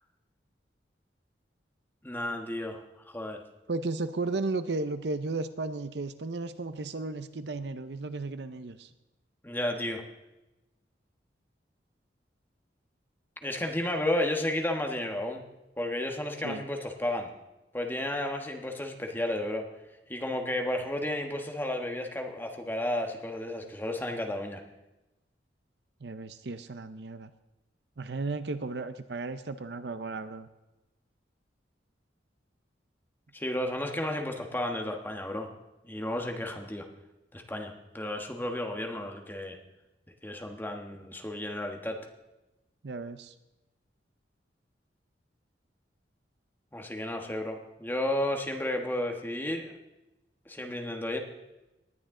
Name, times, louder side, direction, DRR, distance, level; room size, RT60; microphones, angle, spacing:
voice 1, 2.0-3.4 9.4-10.0 13.4-15.4 15.8-17.3 17.7-19.7 20.1-24.6 33.3-35.5 35.8-36.8 37.3-39.6 40.2-42.0 46.7-49.7 50.5-51.2, left 1 dB, 10° left, 3 dB, 1.3 m, -32 dB
voice 2, 3.7-8.9 16.4-16.6 26.0-27.3 28.0-30.5 42.8-43.3, right 3 dB, 65° right, 12 dB, 0.6 m, -34 dB
19.0 x 10.5 x 3.8 m, 0.99 s
head